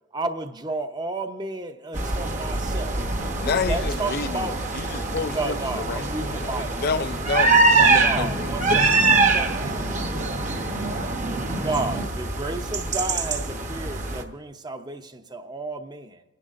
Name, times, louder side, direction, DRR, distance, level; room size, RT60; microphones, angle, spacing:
voice 1, 0.1-3.0 3.4-4.7 5.1-6.9 7.7-9.8 11.6-16.2, right 2 dB, 20° right, 0.7 m, -32 dB
sound 1, 1.9-14.2, right 3 dB, 40° right, 1.0 m, -24 dB
voice 2, 3.4-4.4 4.8-5.5 5.9-8.8, left 5 dB, 50° left, 0.4 m, -29 dB
voice 3, 8.9-11.2, right 2 dB, 85° right, 2.3 m, -39 dB
30.0 x 10.5 x 2.5 m
head